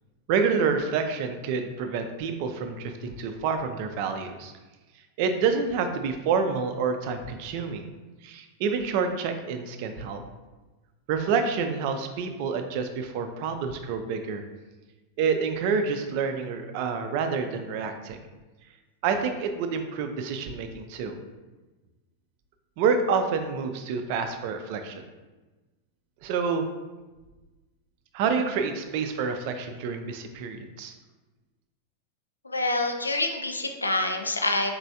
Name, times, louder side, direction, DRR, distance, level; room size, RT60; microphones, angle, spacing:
voice 1, 0.3-4.5 5.2-7.9 8.2-10.2 11.1-14.4 15.2-18.2 19.0-21.2 22.8-25.0 26.2-26.6 28.1-30.9, right 5 dB, 45° right, 6 dB, 0.4 m, -28 dB
voice 2, 32.4-34.7, left 2 dB, 80° left, 5 dB, 0.4 m, -26 dB
4.4 x 3.1 x 2.7 m, 1.2 s
figure-of-eight pair, 90°, 0 cm